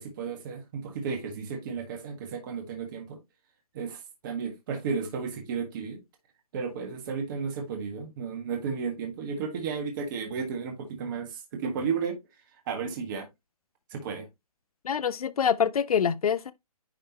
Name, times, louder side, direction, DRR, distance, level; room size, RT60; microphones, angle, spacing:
voice 1, 0.0-3.2 3.7-6.0 6.5-12.2 12.7-13.3 13.9-14.3, right 5 dB, 35° right, 1.5 m, -33 dB
voice 2, 14.8-16.5, left 7 dB, 70° left, 0.7 m, -25 dB
10.0 x 3.4 x 2.9 m
hypercardioid pair, 150°, 20 cm